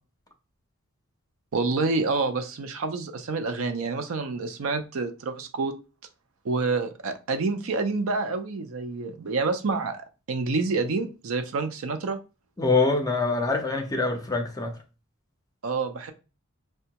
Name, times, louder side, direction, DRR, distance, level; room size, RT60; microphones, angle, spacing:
voice 1, 1.5-5.7 6.4-10.0 10.3-12.2 15.6-16.1, right 3 dB, 65° right, 0.5 m, -28 dB
voice 2, 12.6-14.8, left 3 dB, 15° left, 0.5 m, -24 dB
4.3 x 2.2 x 2.8 m
head